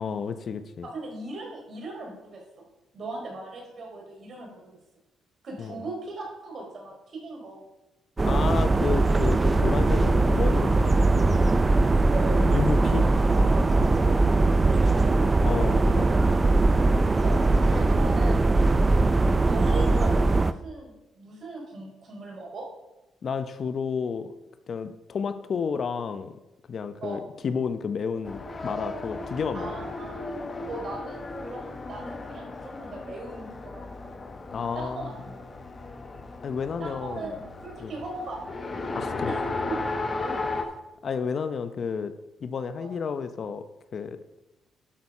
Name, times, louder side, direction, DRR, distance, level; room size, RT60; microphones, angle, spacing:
voice 1, 0.0-0.9 5.6-5.8 8.2-11.5 12.3-13.1 15.4-16.4 23.2-24.3 24.7-26.4 26.7-29.7 34.5-35.1 36.4-37.4 37.8-38.0 38.9-39.3 41.0-42.1 42.4-43.6 43.9-44.2, left 6 dB, 50° left, 11 dB, 0.7 m, -31 dB
voice 2, 0.8-2.6 2.9-4.8 5.4-7.6 12.1-15.9 17.2-18.6 19.4-22.6 27.0-27.2 29.5-30.3 30.7-34.1 34.7-35.4 36.8-38.6 39.2-39.4 39.7-39.8 40.2-40.4 42.8-42.9, right 2 dB, 50° right, 0 dB, 4.1 m, -39 dB
sound 1, 8.2-20.5, right 2 dB, 25° right, 0.5 m, -21 dB
Race car auto racing, 28.2-40.6, left 3 dB, 30° left, 1.3 m, -35 dB
11.5 x 6.3 x 5.5 m, 0.97 s
cardioid pair, 90°, 0 cm